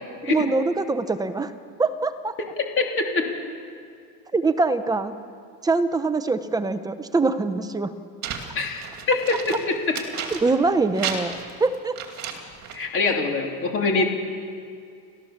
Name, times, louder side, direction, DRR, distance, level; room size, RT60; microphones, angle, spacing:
voice 1, 0.3-1.5 1.8-2.3 4.3-5.1 5.6-7.9 10.3-11.3 11.6-11.9 13.9-14.0, right 3 dB, 10° right, 11 dB, 0.6 m, -23 dB
voice 2, 2.8-3.3 8.5-9.4 9.7-10.0 12.7-14.0, left 3 dB, 25° left, 1 dB, 3.3 m, -24 dB
sound 1, 8.2-10.7 11.0-12.9, right 7 dB, 35° right, 2.5 m, -33 dB
29.5 x 14.0 x 7.2 m, 2.4 s
cardioid pair, 160°, 46 cm